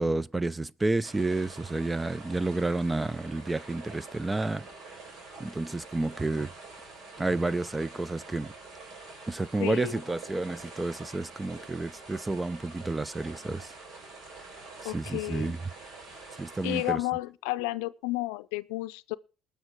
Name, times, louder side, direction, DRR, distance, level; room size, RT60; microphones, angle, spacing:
voice 1, 0.0-4.7 5.4-6.5 7.2-8.5 9.3-13.7 14.8-15.6 16.4-17.0, right 2 dB, 15° right, 0.5 m, -30 dB
sound 1, 1.0-16.9, right 3 dB, 60° right, 5.1 m, -47 dB
voice 2, 9.6-10.0 14.8-15.6 16.6-19.2, left 20 dB, 85° left, 0.5 m, -32 dB
20.0 x 6.8 x 4.5 m
supercardioid pair, 75°, 0 cm